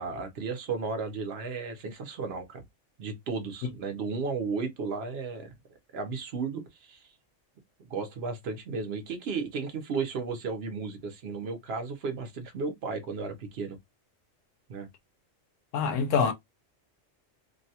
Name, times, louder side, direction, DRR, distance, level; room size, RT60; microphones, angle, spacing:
voice 1, 0.0-2.6 3.0-5.5 5.9-7.1 7.9-13.8 14.7-14.9, right 4 dB, 60° right, 0.9 m, -34 dB
voice 2, 15.7-16.3, left 6 dB, 80° left, 0.9 m, -25 dB
2.6 x 2.2 x 2.7 m
omnidirectional pair, 1.3 m